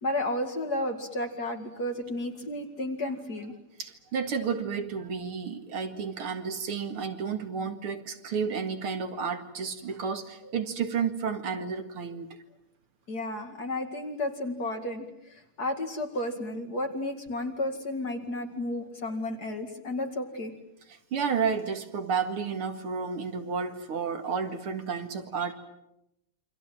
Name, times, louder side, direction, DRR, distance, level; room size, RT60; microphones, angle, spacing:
voice 1, 0.0-3.6 13.1-20.5, left 1 dB, 45° left, 4 dB, 2.7 m, -32 dB
voice 2, 3.8-12.3 20.9-25.5, right 6 dB, 75° right, 7 dB, 2.9 m, -31 dB
28.5 x 25.0 x 7.8 m, 0.86 s
omnidirectional pair, 2.4 m